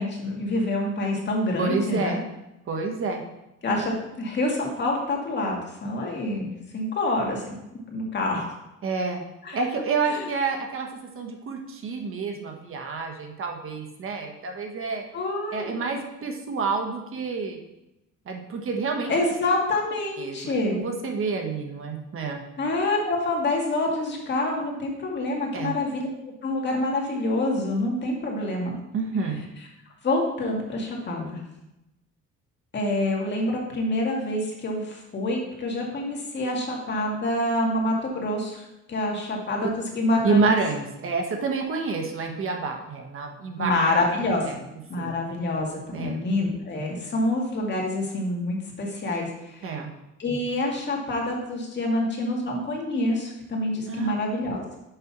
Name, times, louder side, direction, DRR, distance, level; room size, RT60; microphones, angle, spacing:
voice 1, 0.0-2.2 3.6-7.6 7.9-8.5 9.4-9.6 10.1-10.3 15.1-15.8 19.1-20.8 22.6-28.8 30.0-31.4 32.7-40.5 43.6-44.5 44.9-49.8 50.2-54.6, left 1 dB, 40° left, -1 dB, 2.1 m, -27 dB
voice 2, 1.6-2.2 2.7-3.2 8.8-9.2 9.5-10.9 11.1-15.0 15.5-17.6 18.3-19.1 20.2-22.4 25.5-25.7 28.9-29.4 40.2-43.7 44.5-44.6 45.0-45.1 45.9-46.2 49.6-49.9 53.9-54.1, right 4 dB, 45° right, 3 dB, 1.2 m, -28 dB
6.8 x 5.4 x 6.0 m, 0.90 s
cardioid pair, 125°, 29 cm